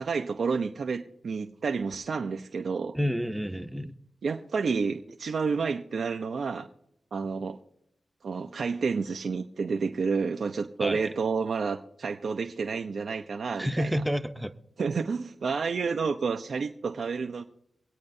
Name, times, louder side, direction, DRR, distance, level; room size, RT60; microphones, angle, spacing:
voice 1, 0.0-3.0 4.2-6.7 7.1-7.6 8.2-14.0 14.8-17.4, right 5 dB, 75° right, 4 dB, 0.5 m, -30 dB
voice 2, 2.9-3.9 10.8-11.0 13.6-14.5, equal, 5° right, 8 dB, 0.7 m, -29 dB
24.5 x 8.5 x 2.7 m, 0.77 s
cardioid pair, 40°, 0 cm